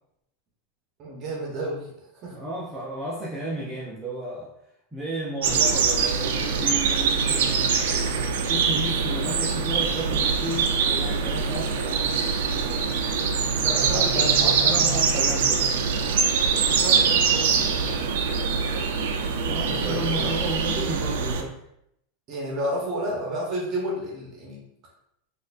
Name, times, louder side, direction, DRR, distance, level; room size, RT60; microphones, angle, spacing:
voice 1, 1.0-2.0 2.2-2.4 13.6-14.5 16.3-18.1 19.6-20.3 22.3-24.6, right 1 dB, 40° right, -2 dB, 0.8 m, -32 dB
voice 2, 2.3-4.5 4.9-12.5 14.1-15.7 19.4-21.6, right 1 dB, 10° right, -7 dB, 0.6 m, -33 dB
sound 1, 5.4-21.4, right 5 dB, 80° right, 0.4 m, -23 dB
4.1 x 2.4 x 2.5 m, 0.78 s
supercardioid pair, 125°, 0 cm